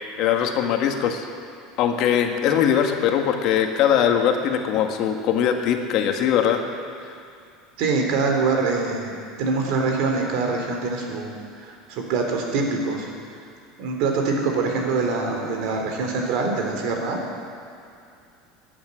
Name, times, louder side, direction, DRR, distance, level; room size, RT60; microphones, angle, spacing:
voice 1, 0.2-1.2 1.8-6.6, left 9 dB, 60° left, 4 dB, 1.6 m, -21 dB
voice 2, 7.8-11.3 11.6-13.1 13.8-17.2, right 4 dB, 65° right, 2 dB, 3.6 m, -24 dB
15.0 x 8.7 x 10.0 m, 2.6 s
supercardioid pair, 105°, 0 cm